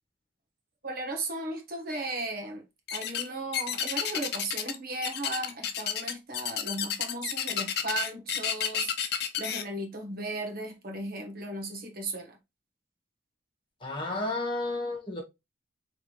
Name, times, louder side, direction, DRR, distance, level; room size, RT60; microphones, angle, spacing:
voice 1, 0.8-2.6 2.9-8.9 9.4-12.4, right 2 dB, 50° right, 1.2 m, -36 dB
sound 1, 2.9-3.3 3.5-4.8 5.0-9.6, left 9 dB, 55° left, 0.7 m, -31 dB
voice 2, 13.8-15.2, left 2 dB, 25° left, 1.4 m, -32 dB
4.8 x 3.3 x 3.0 m
head